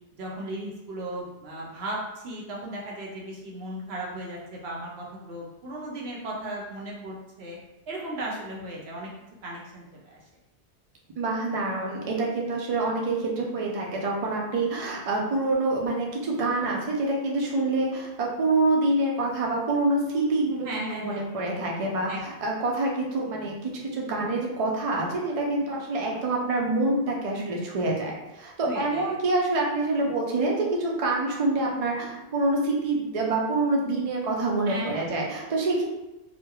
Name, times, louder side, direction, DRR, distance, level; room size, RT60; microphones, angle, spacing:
voice 1, 0.2-7.6 7.9-9.1 9.4-10.2 20.6-21.3 22.1-22.2 28.6-29.2 34.7-35.4, right 1 dB, 70° right, -3 dB, 0.8 m, -36 dB
voice 2, 11.2-35.8, right 2 dB, 50° right, -2 dB, 0.4 m, -26 dB
2.9 x 2.1 x 2.3 m, 0.96 s
omnidirectional pair, 1.1 m